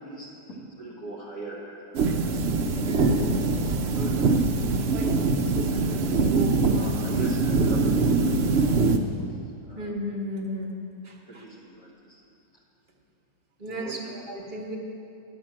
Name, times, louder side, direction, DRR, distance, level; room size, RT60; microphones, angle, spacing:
voice 1, 0.0-2.1 2.3-3.3 3.7-5.1 5.7-8.6 9.1-9.3 9.7-9.9 11.3-12.2 13.7-14.2, right 3 dB, 60° left, -5 dB, 2.3 m, -40 dB
sound 1, 1.9-9.0, right 3 dB, 70° right, 0.6 m, -23 dB
voice 2, 2.8-3.3 9.8-10.7 11.0-11.4 13.6-14.8, equal, 35° right, 0 dB, 1.1 m, -33 dB
10.5 x 5.8 x 7.5 m, 2.7 s
omnidirectional pair, 1.8 m